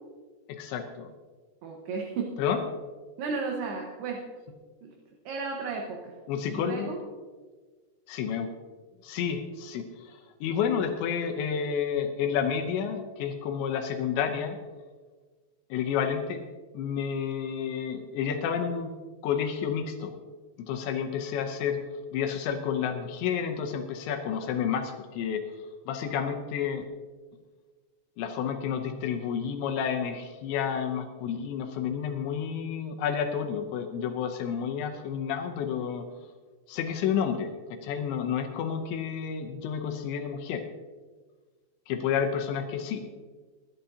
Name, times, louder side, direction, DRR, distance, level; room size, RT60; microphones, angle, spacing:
voice 1, 0.5-1.1 2.4-2.6 6.3-6.9 8.1-8.5 9.0-14.6 15.7-16.4 16.7-18.9 19.2-20.2 20.6-21.8 22.1-25.5 25.9-26.8 28.2-36.1 36.7-40.7 41.9-43.0, left 7 dB, 75° left, 4 dB, 2.8 m, -30 dB
voice 2, 1.6-2.3 3.2-4.2 4.8-4.9 5.3-6.1 6.5-7.0, right 4 dB, 70° right, 0 dB, 2.8 m, -33 dB
22.0 x 11.5 x 2.8 m, 1.4 s
omnidirectional pair, 6.0 m